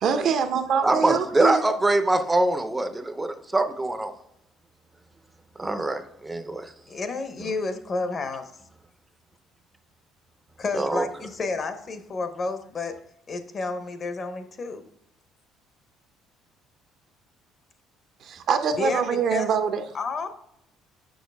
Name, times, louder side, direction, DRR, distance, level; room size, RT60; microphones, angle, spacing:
voice 1, 0.0-1.6 18.2-19.8, right 6 dB, 55° right, 8 dB, 0.7 m, -24 dB
voice 2, 0.8-4.1 5.6-6.7 10.7-11.1, right 2 dB, 10° right, 9 dB, 0.5 m, -24 dB
voice 3, 6.9-8.5 10.6-12.9 13.3-14.8 18.8-19.5 19.9-20.3, left 3 dB, 35° left, 9 dB, 0.8 m, -30 dB
6.3 x 5.9 x 3.4 m, 0.77 s
cardioid pair, 120°, 0 cm